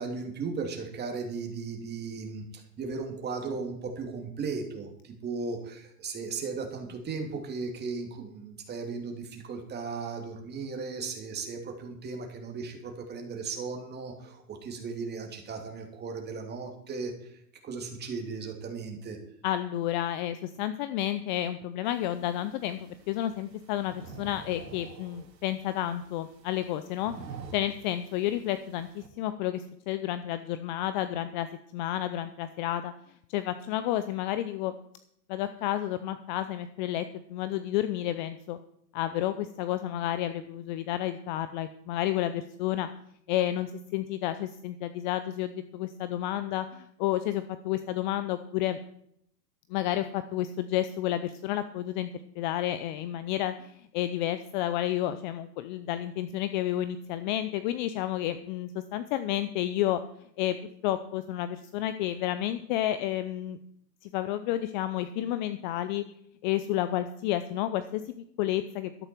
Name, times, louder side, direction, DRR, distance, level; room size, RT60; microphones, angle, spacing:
voice 1, 0.0-2.4 2.8-17.1 17.6-19.2, right 4 dB, 20° right, 2 dB, 2.9 m, -36 dB
voice 2, 19.4-27.1 27.5-31.5 31.7-32.9 33.3-34.7 35.3-37.0 37.3-38.6 38.9-42.9 43.3-48.8 49.7-52.1 52.4-60.0 60.4-60.6 60.8-63.6 64.0-66.0 66.4-68.9, left 13 dB, 30° left, 12 dB, 0.6 m, -31 dB
sound 1, 21.8-29.1, right 5 dB, 80° right, 2.5 m, -49 dB
13.0 x 12.0 x 4.6 m, 0.70 s
hypercardioid pair, 115°, 50 cm